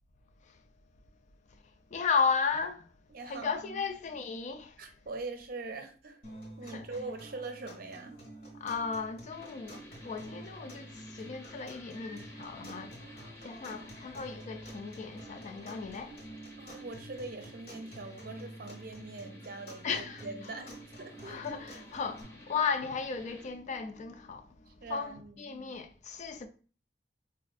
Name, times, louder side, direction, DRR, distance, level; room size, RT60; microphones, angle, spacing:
voice 1, 1.9-2.9 3.3-4.9 6.6-6.9 8.5-13.0 13.4-16.2 19.8-20.3 21.2-26.5, left 5 dB, 40° left, 0.3 m, -35 dB
voice 2, 3.1-3.9 4.8-6.2 6.6-8.2 13.7-14.1 16.6-21.4 24.7-25.6, right 3 dB, 55° right, 0.5 m, -43 dB
sound 1, 6.2-22.2, right 1 dB, 55° left, 1.2 m, -49 dB
sound 2, 9.3-23.5, left 1 dB, 15° left, 0.8 m, -54 dB
4.3 x 2.4 x 2.3 m
head